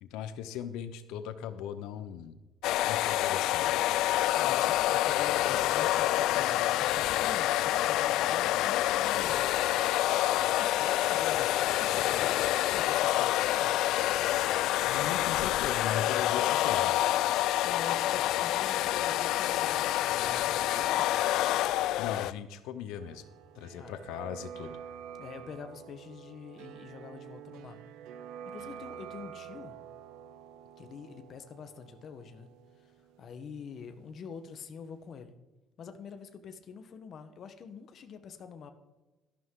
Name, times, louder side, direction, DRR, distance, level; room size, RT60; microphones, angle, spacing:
voice 1, 0.0-2.4 2.9-3.8 14.8-17.0 22.0-23.2 23.5-24.8, left 9 dB, 90° left, 11 dB, 0.8 m, -38 dB
sound 1, 2.6-22.3, left 14 dB, 70° left, 0.3 m, -27 dB
voice 2, 4.3-9.5 10.5-13.7 17.6-21.1 23.8-23.9 25.2-27.8 28.5-29.8 30.8-32.5 33.2-35.3 35.8-38.7, left 6 dB, 40° left, 8 dB, 1.0 m, -45 dB
sound 2, 23.0-34.7 35.0-35.1, right 8 dB, 85° right, 0.8 m, -48 dB
13.0 x 11.5 x 3.8 m, 1.1 s
cardioid pair, 160°, 0 cm